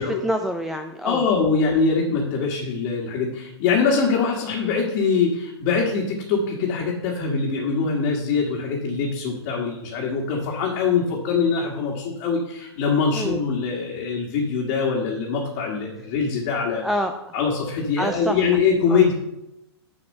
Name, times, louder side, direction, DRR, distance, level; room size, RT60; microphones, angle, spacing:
voice 1, 0.0-1.2 13.1-13.4 16.8-17.3 18.0-18.4 18.9-19.0, equal, ahead, 4 dB, 0.3 m, -27 dB
voice 2, 1.0-16.8 17.3-19.1, left 5 dB, 40° left, -3 dB, 1.7 m, -23 dB
7.1 x 4.9 x 6.5 m, 0.88 s
hypercardioid pair, 145°, 14 cm